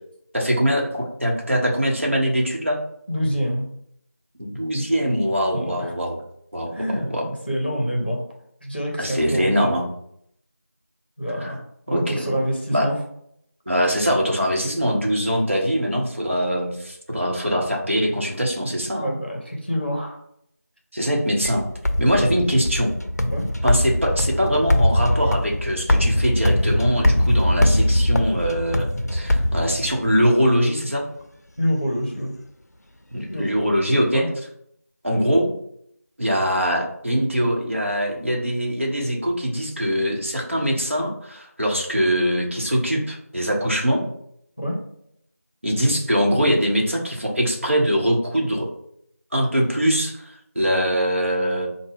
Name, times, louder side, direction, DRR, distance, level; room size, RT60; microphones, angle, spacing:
voice 1, 0.3-2.8 4.4-6.2 6.5-7.3 9.0-9.9 11.4-11.5 11.9-12.2 12.7-12.9 13.7-19.2 20.9-21.6 22.0-22.9 23.6-31.1 33.1-34.3 35.0-35.5 36.2-44.0 45.6-48.7 49.3-51.7, equal, 50° right, -1 dB, 1.0 m, -22 dB
voice 2, 3.1-3.7 5.5-5.9 6.6-8.2 8.6-9.7 11.2-11.6 11.9-13.0 19.0-20.2 23.3-23.5 31.6-32.3 33.3-33.5 34.1-34.3 44.6-44.8, equal, 35° left, 0 dB, 0.7 m, -26 dB
sound 1, 21.4-30.2, left 1 dB, 75° left, 0.5 m, -21 dB
4.3 x 2.1 x 3.4 m, 0.70 s
figure-of-eight pair, 180°, 9 cm